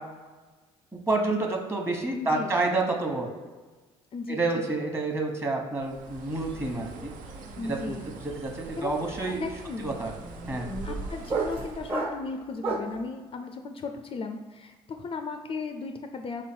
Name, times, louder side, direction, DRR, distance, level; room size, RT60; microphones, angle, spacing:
voice 1, 0.9-3.3 4.3-7.1 7.6-7.9 8.2-9.4 9.8-10.1 10.5-10.7, right 2 dB, 15° right, 1 dB, 1.1 m, -29 dB
voice 2, 2.1-2.5 4.1-4.4 7.5-8.1 8.8-9.9 10.8-16.4, left 4 dB, 40° left, 5 dB, 0.4 m, -36 dB
Bird, 5.8-12.0, right 3 dB, 65° right, 0.6 m, -42 dB
sound 1, 6.2-6.5 6.8-13.0, right 3 dB, 45° right, 1.3 m, -35 dB
3.5 x 3.1 x 4.4 m, 1.3 s
supercardioid pair, 70°, 14 cm